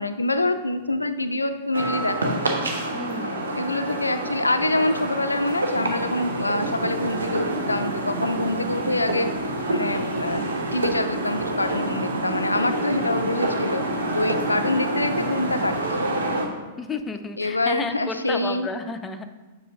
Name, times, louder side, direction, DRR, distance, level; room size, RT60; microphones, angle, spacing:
voice 1, 0.0-2.4 3.2-13.9 14.1-16.2 17.4-18.7, left 2 dB, 80° left, 9 dB, 0.3 m, -26 dB
sound 1, 1.7-16.5, right 2 dB, 70° right, 0.8 m, -27 dB
voice 2, 2.9-3.6 16.8-19.2, left 4 dB, 15° left, 7 dB, 0.4 m, -32 dB
7.5 x 6.2 x 2.6 m, 1.2 s
figure-of-eight pair, 100°, 0 cm